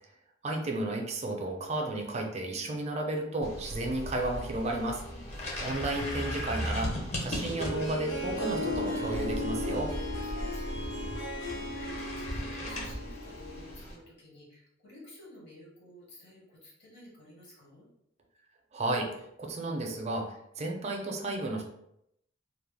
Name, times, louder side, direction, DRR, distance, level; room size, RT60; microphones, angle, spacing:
voice 1, 0.4-5.0 5.6-6.9 7.2-9.9 18.7-19.1 19.4-21.6, right 2 dB, 35° right, 1 dB, 0.4 m, -33 dB
sound 1, 3.4-14.0, equal, 35° left, 0.6 m, -37 dB
voice 2, 5.0-5.5 10.0-17.9, equal, 60° left, -6 dB, 1.3 m, -52 dB
Harp, 7.3-13.8, left 1 dB, 80° left, 1.0 m, -36 dB
2.3 x 2.0 x 3.2 m, 0.78 s
head